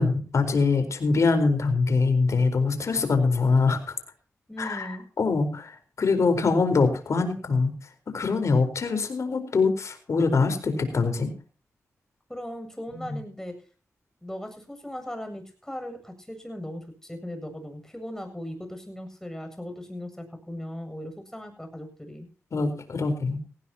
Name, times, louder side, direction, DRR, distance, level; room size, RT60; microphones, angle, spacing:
voice 1, 0.0-3.9 4.6-7.7 8.1-11.3 12.9-13.2 22.5-23.4, left 4 dB, 65° left, 6 dB, 4.5 m, -24 dB
voice 2, 4.5-5.0 12.3-13.6 14.2-22.3, left 1 dB, 10° left, 6 dB, 7.8 m, -38 dB
18.0 x 17.5 x 3.0 m, 0.38 s
cardioid pair, 60°, 6 cm